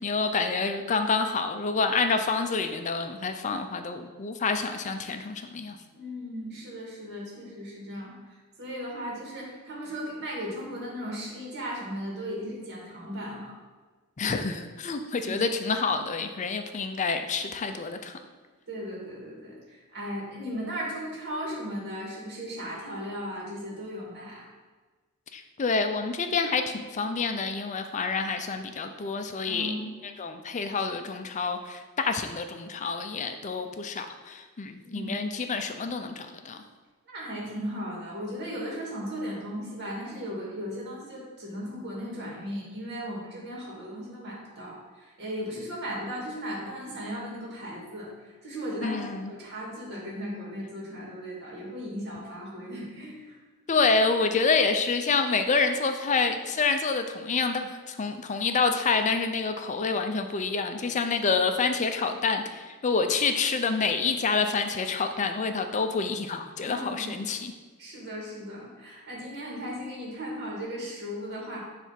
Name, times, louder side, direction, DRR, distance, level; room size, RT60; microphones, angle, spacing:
voice 1, 0.0-5.8 14.2-18.2 25.3-29.7 30.2-36.6 48.8-49.3 53.7-67.5, left 4 dB, 35° left, 7 dB, 0.4 m, -28 dB
voice 2, 5.9-8.1 8.6-13.5 15.2-15.5 18.7-24.4 29.4-29.9 34.8-35.1 37.1-49.0 49.3-53.4 66.6-67.2 67.8-71.6, equal, 50° right, -4 dB, 2.3 m, -36 dB
7.3 x 3.4 x 5.8 m, 1.3 s
head